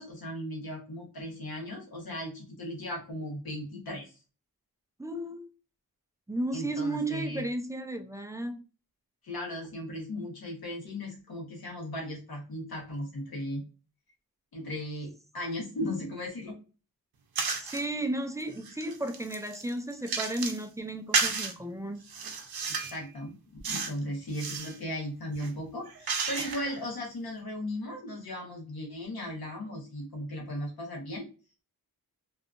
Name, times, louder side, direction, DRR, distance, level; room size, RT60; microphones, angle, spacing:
voice 1, 0.0-4.1 6.5-7.4 9.2-13.6 14.5-16.6 22.7-23.3 23.7-31.3, left 1 dB, 70° left, 1.2 m, -37 dB
voice 2, 5.0-5.5 6.3-8.6 17.6-22.0, right 1 dB, 10° right, 0.3 m, -34 dB
sound 1, 17.4-17.9 18.4-20.6 21.1-21.5 22.1-23.0 23.6-24.0 24.3-24.8 25.3-26.8, right 5 dB, 70° right, 0.6 m, -32 dB
2.7 x 2.4 x 2.4 m
wide cardioid pair, 100°, 38 cm